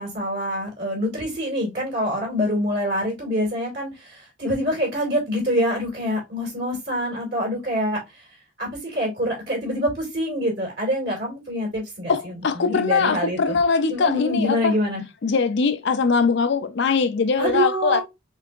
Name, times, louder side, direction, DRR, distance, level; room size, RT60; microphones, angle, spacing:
voice 1, 0.0-8.0 8.6-13.6 13.9-15.0 17.4-18.0, equal, 60° right, 2.4 m, -25 dB
voice 2, 12.1-14.8 15.2-18.0, left 5 dB, 65° left, 0.5 m, -21 dB
4.6 x 3.4 x 2.5 m
head